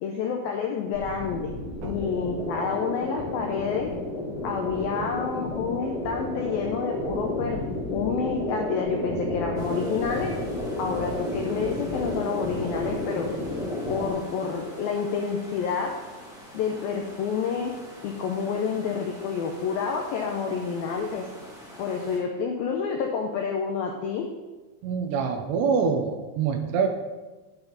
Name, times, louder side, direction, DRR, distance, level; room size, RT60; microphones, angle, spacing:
voice 1, 0.0-1.5 1.8-3.9 4.4-7.6 7.9-10.3 10.8-13.3 13.9-15.9 16.5-17.7 18.0-21.3 21.8-24.3, left 6 dB, 85° left, 2 dB, 2.1 m, -29 dB
sound 1, 0.9-14.1, left 1 dB, 35° left, 4.3 m, -31 dB
sound 2, 9.5-22.2, equal, 5° right, 0.7 m, -46 dB
voice 2, 24.8-26.9, right 6 dB, 75° right, 4 dB, 3.0 m, -25 dB
10.5 x 9.5 x 4.1 m, 1.2 s
omnidirectional pair, 5.3 m